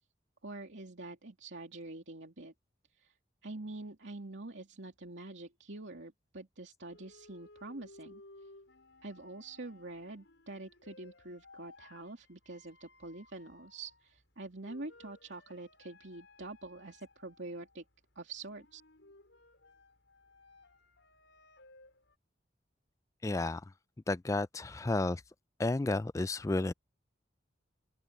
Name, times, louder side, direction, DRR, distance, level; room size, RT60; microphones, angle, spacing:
voice 1, 0.4-2.5 3.0-3.1 3.4-8.2 9.0-17.8 18.2-18.8, right 2 dB, 80° right, 2.6 m, -46 dB
Saint Seans Sonata for Clarinet, 6.9-22.2, left 2 dB, 80° left, 6.4 m, -59 dB
voice 2, 23.2-23.6 24.1-25.2 25.6-26.7, left 2 dB, 15° left, 0.3 m, -31 dB
open air
head